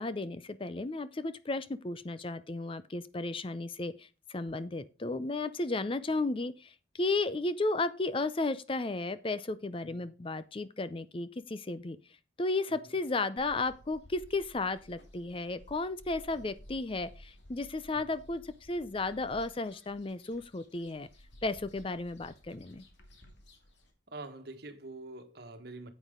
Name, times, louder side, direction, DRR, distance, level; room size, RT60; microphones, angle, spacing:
voice 1, 0.0-12.0 12.4-21.1 21.4-22.8, left 3 dB, 30° left, 0.5 m, -34 dB
sound 1, 13.4-23.9, equal, 65° left, 2.5 m, -56 dB
voice 2, 24.1-25.9, right 2 dB, 55° right, 1.5 m, -46 dB
9.2 x 8.3 x 3.7 m
head